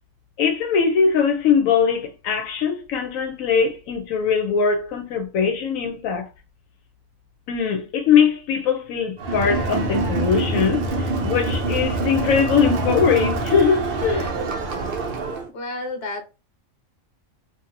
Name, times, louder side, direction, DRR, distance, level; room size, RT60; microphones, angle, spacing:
voice 1, 0.4-6.3 7.5-14.3, left 6 dB, 75° left, 1.0 m, -21 dB
Crowd, 9.2-15.5, right 2 dB, 65° right, 0.5 m, -25 dB
voice 2, 15.5-16.2, left 2 dB, 55° left, 0.9 m, -30 dB
2.7 x 2.5 x 2.5 m
omnidirectional pair, 1.4 m